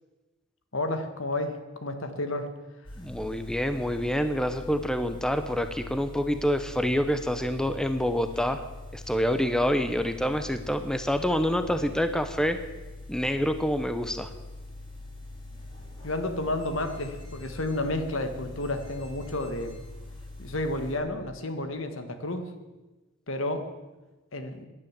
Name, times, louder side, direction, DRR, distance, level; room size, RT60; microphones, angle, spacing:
voice 1, 0.7-2.5 16.0-19.8 20.4-22.5 23.3-23.7 24.3-24.7, left 1 dB, 70° left, 8 dB, 1.7 m, -31 dB
sound 1, 2.8-21.0, left 2 dB, 25° left, 4.7 m, -43 dB
voice 2, 3.0-8.6 8.9-12.6 13.1-14.3, equal, 5° left, 9 dB, 0.7 m, -27 dB
17.0 x 10.5 x 7.4 m, 1.2 s
head